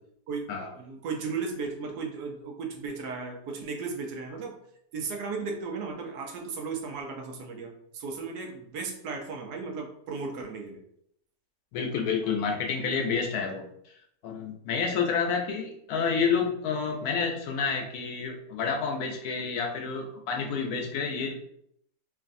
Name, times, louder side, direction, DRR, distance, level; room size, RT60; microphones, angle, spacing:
voice 1, 0.8-4.6 4.9-10.8, right 4 dB, 80° right, 2 dB, 1.2 m, -35 dB
voice 2, 11.7-13.9 14.2-21.3, left 5 dB, 75° left, 2 dB, 1.0 m, -29 dB
3.1 x 2.5 x 2.5 m, 0.72 s
omnidirectional pair, 1.7 m